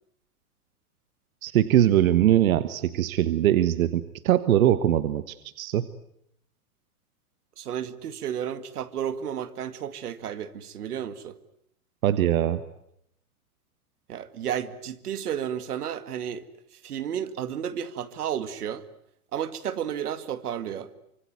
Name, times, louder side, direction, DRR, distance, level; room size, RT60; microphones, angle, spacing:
voice 1, 1.4-5.9 12.0-12.6, right 12 dB, 65° right, 13 dB, 1.4 m, -22 dB
voice 2, 7.6-11.4 14.1-16.5 16.8-18.8 19.3-20.9, right 9 dB, 90° right, 12 dB, 2.2 m, -32 dB
25.5 x 24.0 x 9.5 m, 0.74 s
supercardioid pair, 160°, 44 cm